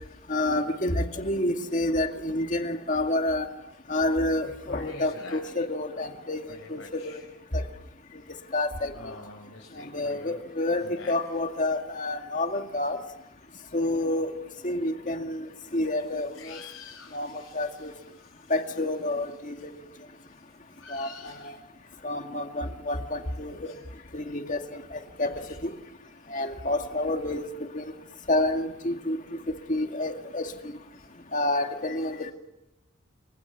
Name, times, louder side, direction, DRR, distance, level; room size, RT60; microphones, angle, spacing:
voice 1, 0.3-3.5 3.9-7.1 7.5-7.6 8.5-9.2 9.8-13.0 13.7-14.3 14.6-16.6 17.1-17.9 18.5-19.6 20.9-21.5 22.0-23.7 24.1-25.3 25.6-25.7 26.3-27.4 27.7-27.9 28.3-29.4 29.7-30.5 31.3-32.3, left 1 dB, 40° left, 5 dB, 2.1 m, -29 dB
voice 2, 4.4-5.6 5.9-6.1 6.5-7.2 8.9-10.4 10.8-11.1 13.4-13.5 16.3-17.9 18.1-18.5 20.2-21.5 23.6-23.9 25.4-25.6 26.1-26.7 30.9-31.0, left 3 dB, 65° left, -1 dB, 5.9 m, -47 dB
30.0 x 25.5 x 7.2 m, 0.93 s
head